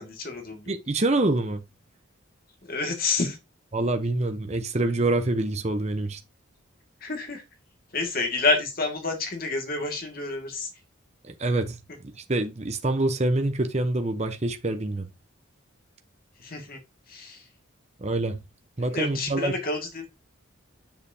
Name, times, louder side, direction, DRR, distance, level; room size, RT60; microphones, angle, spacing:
voice 1, 0.0-0.7 2.7-3.4 7.0-7.4 7.9-10.7 16.4-16.8 17.1-17.4 18.9-20.1, left 3 dB, 45° left, 1.9 m, -28 dB
voice 2, 0.7-1.6 3.7-6.2 11.2-11.8 12.1-15.1 18.0-18.4 18.8-19.5, right 2 dB, 30° right, 0.7 m, -26 dB
7.4 x 7.0 x 2.7 m
head